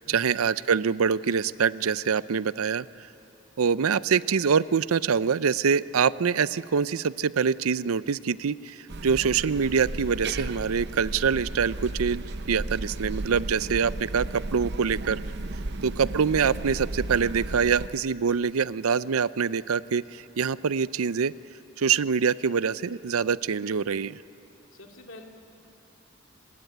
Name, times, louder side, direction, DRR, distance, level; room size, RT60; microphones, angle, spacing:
voice 1, 0.0-3.1 3.6-15.2 15.8-21.3 21.8-24.2, right 6 dB, 90° right, 17 dB, 0.5 m, -25 dB
sound 1, 8.9-17.9, right 2 dB, 50° right, 0.8 m, -34 dB
voice 2, 24.7-25.2, left 2 dB, 65° left, 2 dB, 2.6 m, -47 dB
25.5 x 20.5 x 9.4 m, 3.0 s
head